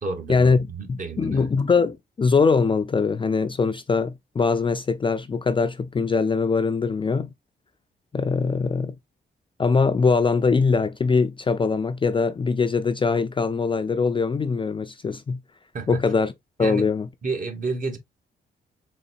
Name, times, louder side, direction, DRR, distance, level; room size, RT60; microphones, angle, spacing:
voice 1, 0.0-1.5 15.7-16.0 16.6-16.9 17.2-18.0, right 3 dB, 45° right, 1.2 m, -30 dB
voice 2, 0.9-7.3 8.1-8.9 9.6-15.4 15.9-16.3 16.6-17.1, left 4 dB, 25° left, 0.4 m, -22 dB
4.0 x 3.1 x 2.6 m
cardioid pair, 90°, 19 cm